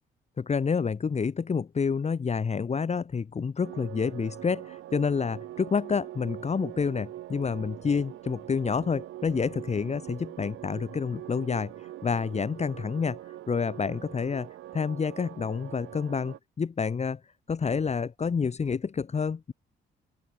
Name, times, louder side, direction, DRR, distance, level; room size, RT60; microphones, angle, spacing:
voice 1, 0.4-11.7 12.0-13.2 13.5-17.2 17.5-19.5, left 5 dB, 35° left, 1.5 m, -28 dB
sound 1, 3.6-16.4, right 14 dB, 80° right, 2.9 m, -43 dB
open air
cardioid pair, 90°, 20 cm